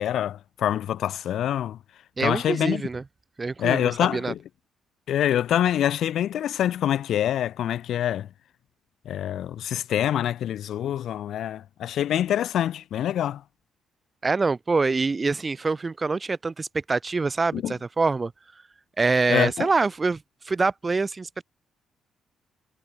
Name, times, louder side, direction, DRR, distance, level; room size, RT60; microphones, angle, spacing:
voice 1, 0.0-1.8 2.2-2.8 3.6-4.4 5.1-8.3 9.0-13.4 17.5-17.7 19.3-19.7, left 11 dB, 70° left, 1.1 m, -25 dB
voice 2, 2.2-3.0 3.4-4.3 14.2-18.3 19.0-21.4, right 4 dB, 30° right, 1.2 m, -25 dB
supercardioid pair, 70°, 0 cm